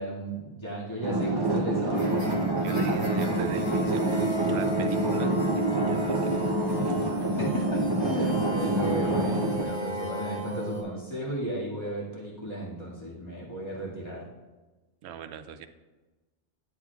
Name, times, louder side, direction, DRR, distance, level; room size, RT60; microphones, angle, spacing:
voice 1, 0.0-2.2 7.4-14.2, right 1 dB, 25° left, -6 dB, 2.1 m, -34 dB
sound 1, 1.0-9.6, right 2 dB, 25° right, 0.6 m, -27 dB
sound 2, 1.9-10.8, equal, 70° left, 2.1 m, -34 dB
voice 2, 2.6-6.3 6.8-7.3 15.0-15.7, right 8 dB, 70° right, 9 dB, 0.8 m, -39 dB
11.0 x 7.8 x 2.4 m, 1.2 s
omnidirectional pair, 1.2 m